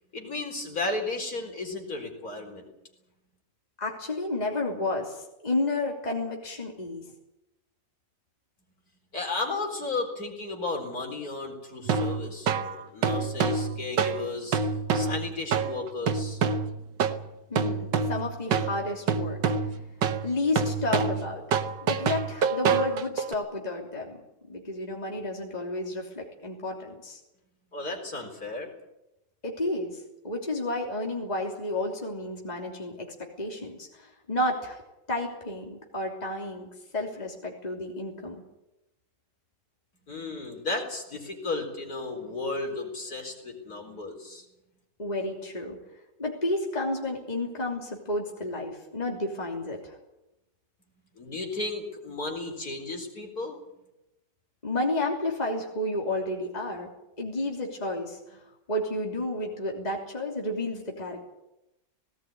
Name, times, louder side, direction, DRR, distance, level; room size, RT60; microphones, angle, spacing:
voice 1, 0.1-2.7 9.1-14.6 14.9-16.4 27.7-28.7 40.1-44.4 51.2-53.6, left 3 dB, 55° left, 3 dB, 4.6 m, -34 dB
voice 2, 3.8-7.0 17.5-19.4 20.1-21.4 21.8-24.2 24.5-27.2 29.4-30.0 30.2-34.8 35.1-36.7 36.9-38.4 45.0-45.8 46.2-50.0 54.6-56.9 57.2-58.4 58.7-61.3, left 2 dB, 20° left, 0 dB, 3.2 m, -31 dB
sound 1, 11.9-23.3, right 5 dB, 80° right, 1.8 m, -27 dB
18.5 x 18.0 x 9.5 m, 0.91 s
omnidirectional pair, 1.9 m